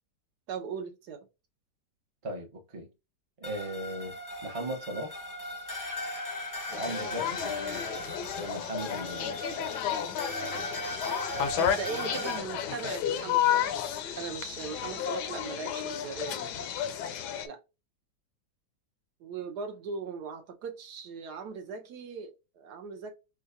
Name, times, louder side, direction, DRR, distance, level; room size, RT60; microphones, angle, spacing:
voice 1, 0.5-1.3 7.1-7.3 8.7-8.9 11.5-13.9 14.2-16.7 17.4-17.6 19.2-23.1, right 6 dB, 70° right, 1.2 m, -39 dB
voice 2, 2.2-2.9 3.4-5.3 6.7-7.4 8.4-9.3, right 1 dB, 35° right, 0.5 m, -37 dB
sound 1, 3.4-12.4, left 1 dB, 25° left, 0.4 m, -38 dB
sound 2, 6.7-17.5, left 9 dB, 75° left, 1.1 m, -32 dB
4.5 x 2.3 x 2.6 m
omnidirectional pair, 1.9 m